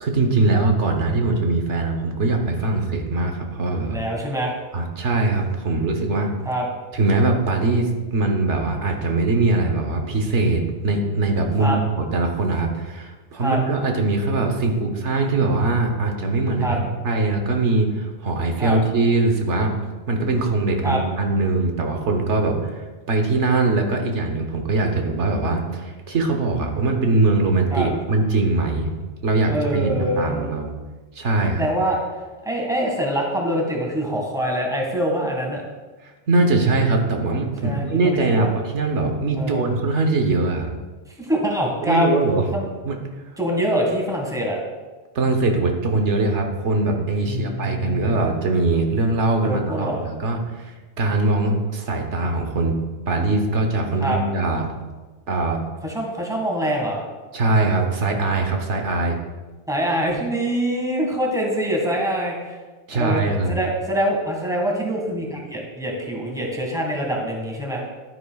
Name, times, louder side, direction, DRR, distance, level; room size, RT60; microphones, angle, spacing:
voice 1, 0.0-4.0 4.7-6.3 6.9-19.7 20.1-28.9 29.2-30.7 31.1-31.7 36.0-40.7 41.8-42.4 42.8-43.0 45.1-52.8 53.1-54.7 55.3-55.6 57.3-59.2 62.9-63.5, right 2 dB, 85° right, 3 dB, 1.3 m, -22 dB
voice 2, 3.8-4.5 6.4-6.7 11.6-11.8 13.4-13.6 16.6-16.8 18.6-18.8 20.8-21.0 27.7-27.9 29.5-30.5 31.5-32.0 32.4-35.6 37.6-38.5 39.3-39.7 41.2-42.2 42.5-42.7 43.4-44.6 47.2-48.2 49.4-50.0 54.0-54.2 55.8-57.0 59.7-62.6 62.9-63.2 63.5-67.8, equal, 5° right, -1 dB, 1.7 m, -24 dB
11.5 x 9.8 x 2.3 m, 1.3 s
omnidirectional pair, 1.2 m